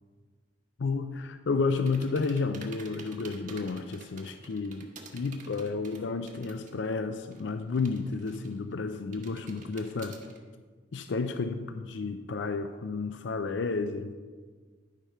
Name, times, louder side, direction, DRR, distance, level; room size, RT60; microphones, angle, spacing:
voice 1, 0.8-10.2 10.9-14.1, left 4 dB, 65° left, 9 dB, 0.4 m, -31 dB
sound 1, 1.9-6.9 7.1-8.7 9.1-10.4, right 3 dB, 40° right, 1.1 m, -49 dB
10.5 x 5.0 x 5.5 m, 1.5 s
head